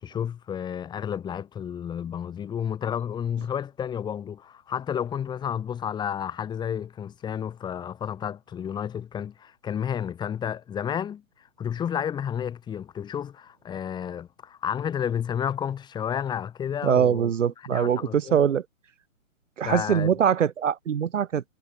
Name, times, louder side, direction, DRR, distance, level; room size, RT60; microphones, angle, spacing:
voice 1, 0.0-11.2 11.6-17.3 17.7-18.4 19.6-20.1, left 8 dB, 10° left, 4.4 m, -31 dB
voice 2, 16.8-18.6 19.6-21.4, right 8 dB, 60° right, 1.8 m, -23 dB
hypercardioid pair, 155°, 42 cm